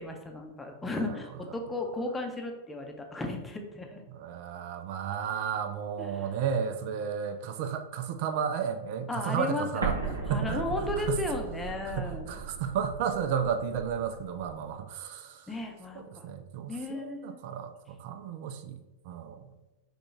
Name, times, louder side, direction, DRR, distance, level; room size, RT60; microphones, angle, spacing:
voice 1, 0.0-4.0 6.0-6.3 9.1-12.3 15.5-16.3 16.7-17.4, left 2 dB, 10° left, 2 dB, 0.7 m, -35 dB
voice 2, 4.1-10.0 10.3-11.2 11.9-15.4 15.9-18.8 19.1-19.4, right 7 dB, 55° right, 8 dB, 0.4 m, -33 dB
Explosion, 9.8-14.6, right 4 dB, 85° right, 0.8 m, -37 dB
6.0 x 2.3 x 3.2 m, 1.1 s
figure-of-eight pair, 95°, 0 cm